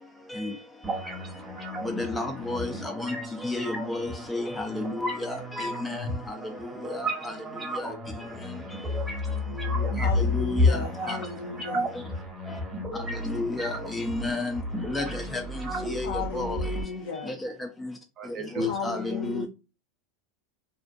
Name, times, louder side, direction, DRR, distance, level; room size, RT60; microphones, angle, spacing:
sound 1, 0.8-16.8, left 1 dB, 15° right, 0.9 m, -31 dB
voice 1, 1.8-3.2 3.4-6.4 6.9-7.1 7.8-7.9 10.0-10.8 11.1-11.2 13.2-14.6 14.9-15.4 15.9-16.6 17.3-17.5 17.8-17.9 18.6-19.5, left 2 dB, 10° left, 0.4 m, -32 dB
voice 2, 8.9-10.0 18.2-18.7 19.0-19.2, left 2 dB, 40° right, 0.6 m, -35 dB
voice 3, 10.0-11.9 16.0-17.4 18.6-19.5, left 5 dB, 80° left, 0.5 m, -35 dB
2.5 x 2.1 x 2.4 m
supercardioid pair, 110°, 0 cm